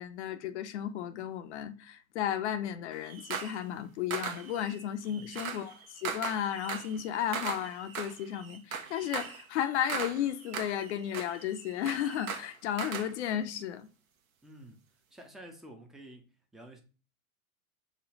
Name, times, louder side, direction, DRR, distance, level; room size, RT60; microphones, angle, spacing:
voice 1, 0.0-13.9, left 10 dB, 55° left, 0.5 m, -34 dB
sound 1, 2.9-3.6 4.1-13.1, right 6 dB, 70° right, 0.8 m, -39 dB
voice 2, 14.4-14.8 15.1-16.2 16.5-16.8, right 1 dB, ahead, 0.4 m, -50 dB
5.1 x 2.1 x 3.7 m
figure-of-eight pair, 90°, 43 cm